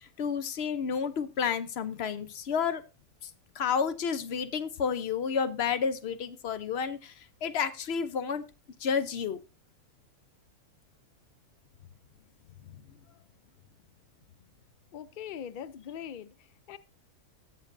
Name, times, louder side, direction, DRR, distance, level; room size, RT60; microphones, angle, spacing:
voice 1, 0.2-2.8 3.6-7.1 7.4-8.4 8.8-9.4, left 6 dB, 55° left, 0.8 m, -30 dB
voice 2, 14.9-16.8, left 9 dB, 85° left, 0.4 m, -42 dB
19.5 x 6.7 x 2.6 m
omnidirectional pair, 1.5 m